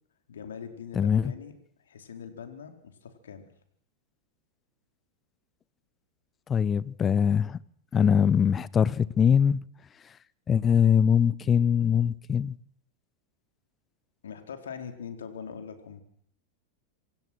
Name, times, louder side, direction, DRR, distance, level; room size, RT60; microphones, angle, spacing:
voice 1, 0.3-1.5 1.8-3.5 14.2-16.0, left 7 dB, 65° left, 4.4 m, -42 dB
voice 2, 0.9-1.3 6.5-7.6 7.9-9.6 10.5-12.6, left 7 dB, 20° left, 1.0 m, -22 dB
27.0 x 26.5 x 6.3 m
figure-of-eight pair, 90°, 0 cm